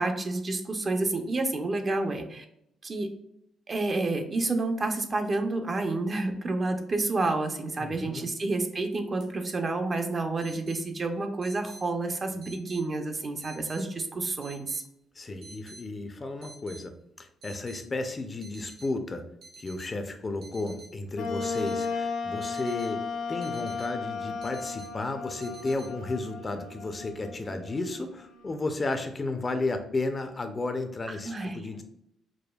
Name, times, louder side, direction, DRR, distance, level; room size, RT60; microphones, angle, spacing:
voice 1, 0.0-2.4 2.8-3.1 3.7-14.8 31.1-31.6, right 2 dB, 35° right, 5 dB, 0.5 m, -29 dB
voice 2, 7.8-8.3 15.2-16.9 17.2-19.2 19.6-23.0 23.3-31.8, left 2 dB, 30° left, 7 dB, 0.5 m, -33 dB
sound 1, 8.5-8.7 9.2-9.3 10.4-10.8 11.4-11.8 12.4-12.8 13.4-13.8 14.4-14.8 15.4-15.8 16.4-16.8 17.4-17.8 18.4-18.9 19.4-19.9 20.4-20.9 21.4-21.9 22.4-22.9 23.4-23.9 24.4-24.9 25.4-25.9, right 3 dB, 75° right, 1.1 m, -49 dB
Wind instrument woodwind instrument, 21.1-28.6, left 4 dB, 80° left, 0.8 m, -35 dB
4.9 x 2.2 x 2.2 m, 0.77 s
cardioid pair, 90°, 0 cm